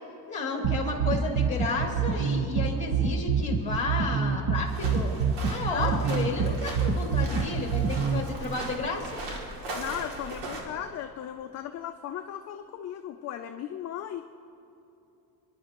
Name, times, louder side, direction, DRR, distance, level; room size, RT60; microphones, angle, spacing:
voice 1, 0.3-5.1 5.5-7.8 8.1-9.2, left 3 dB, 15° left, -1 dB, 2.8 m, -32 dB
sound 1, 0.6-8.2, right 6 dB, 45° right, 1.0 m, -26 dB
sound 2, 4.7-10.6, right 2 dB, 80° right, 2.7 m, -39 dB
voice 2, 5.7-6.0 9.7-14.2, left 10 dB, 40° left, 6 dB, 0.5 m, -36 dB
25.5 x 11.0 x 3.0 m, 2.9 s
cardioid pair, 140°, 42 cm